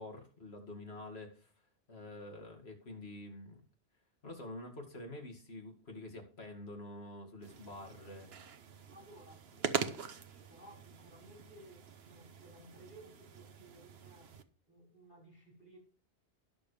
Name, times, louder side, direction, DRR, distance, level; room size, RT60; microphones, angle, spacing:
voice 1, 0.0-1.5 1.9-3.6 4.2-8.3, left 1 dB, 75° left, 2.5 m, -47 dB
sound 1, 7.4-14.4, right 7 dB, 75° right, 1.2 m, -43 dB
voice 2, 8.9-14.4 14.7-15.8, right 1 dB, 50° left, 5.5 m, -58 dB
19.5 x 6.9 x 3.3 m
omnidirectional pair, 1.1 m